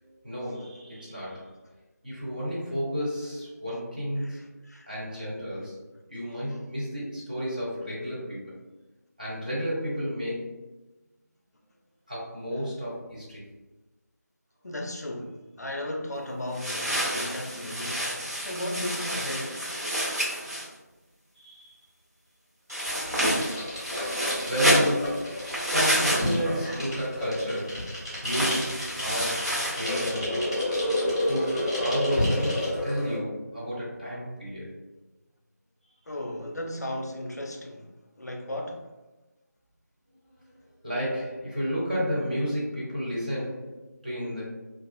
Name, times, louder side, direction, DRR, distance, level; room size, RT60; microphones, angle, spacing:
voice 1, 0.0-1.5 2.0-4.5 4.9-5.8 6.1-8.5 9.2-10.6 12.1-13.4 18.3-18.5 19.4-20.2 21.4-21.8 24.4-27.9 28.2-30.4 31.2-34.7 40.5-44.4, equal, 30° right, 0.7 m, -32 dB
voice 2, 4.2-4.9 14.6-19.7 36.1-37.9 38.2-38.9, left 1 dB, 65° left, 0.4 m, -36 dB
sound 1, 16.5-20.7 22.7-26.6 28.2-30.1, equal, 60° right, 1.0 m, -28 dB
sound 2, 22.9-33.2, left 1 dB, 15° left, 0.5 m, -30 dB
2.3 x 2.3 x 2.3 m
figure-of-eight pair, 170°, 9 cm